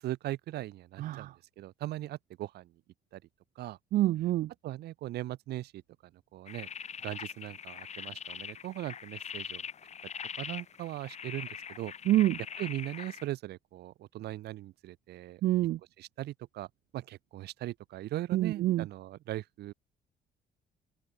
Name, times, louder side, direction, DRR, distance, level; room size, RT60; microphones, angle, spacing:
voice 1, 0.0-2.7 3.1-3.2 3.6-3.8 4.6-5.8 6.3-6.7 7.0-9.6 10.4-11.9 12.6-15.4 16.0-16.7 16.9-19.7, right 15 dB, 75° right, 6.2 m, -39 dB
voice 2, 3.9-4.5 12.1-12.4 15.4-15.8 18.3-18.8, right 14 dB, 55° right, 0.4 m, -26 dB
sound 1, 6.5-13.3, left 7 dB, 40° left, 3.0 m, -42 dB
open air
cardioid pair, 110°, 17 cm